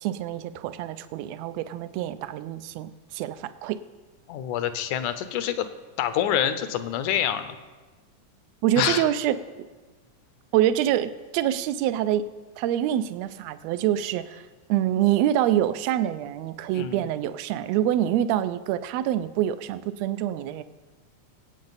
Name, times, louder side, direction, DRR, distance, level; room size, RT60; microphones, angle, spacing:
voice 1, 0.0-3.8 8.6-9.7 10.5-12.2 12.6-20.6, right 11 dB, 80° right, 12 dB, 1.6 m, -26 dB
voice 2, 4.3-5.7 6.0-7.6 8.8-9.0 16.7-17.0, left 10 dB, 80° left, 11 dB, 2.2 m, -26 dB
23.5 x 8.6 x 4.0 m, 1.3 s
omnidirectional pair, 3.5 m